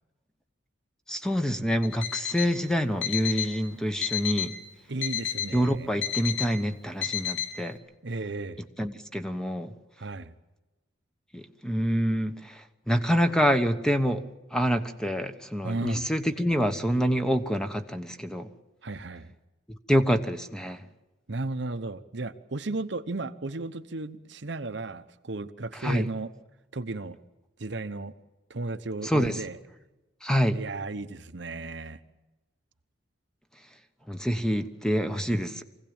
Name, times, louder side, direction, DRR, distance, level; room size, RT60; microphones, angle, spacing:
voice 1, 1.1-4.5 5.5-7.8 8.8-9.7 11.3-14.2 14.5-18.5 19.9-20.8 25.8-26.1 29.0-29.4 30.2-30.6 34.1-35.6, equal, 5° left, 8 dB, 1.1 m, -26 dB
Alarm, 1.8-2.5 3.0-3.5 4.0-4.5 5.0-5.5 6.0-6.5 7.0-7.5, left 9 dB, 70° left, 3.3 m, -31 dB
voice 2, 4.9-5.9 8.0-8.6 10.0-10.3 15.6-16.0 18.8-19.3 21.3-26.3 26.7-27.2 27.6-28.1 28.5-29.6 30.5-32.0, right 2 dB, 60° right, 10 dB, 1.0 m, -34 dB
24.5 x 17.0 x 8.9 m, 1.1 s
head